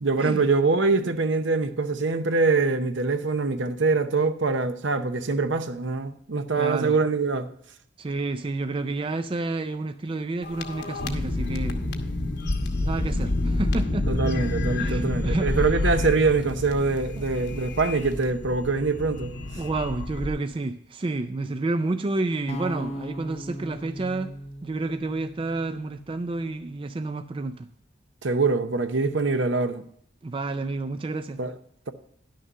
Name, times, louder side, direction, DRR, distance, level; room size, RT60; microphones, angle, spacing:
voice 1, 0.0-7.5 14.1-19.3 28.2-29.8 31.4-31.5, right 3 dB, 65° right, 0.7 m, -24 dB
voice 2, 6.6-7.0 8.0-11.8 12.8-14.1 14.8-15.6 17.2-17.3 19.6-24.3 24.6-27.7 30.2-31.4, right 2 dB, 25° right, 0.4 m, -30 dB
sound 1, 10.4-20.3, left 2 dB, 60° left, 1.0 m, -28 dB
sound 2, 22.5-26.6, equal, 30° left, 0.6 m, -38 dB
11.0 x 6.4 x 5.4 m
head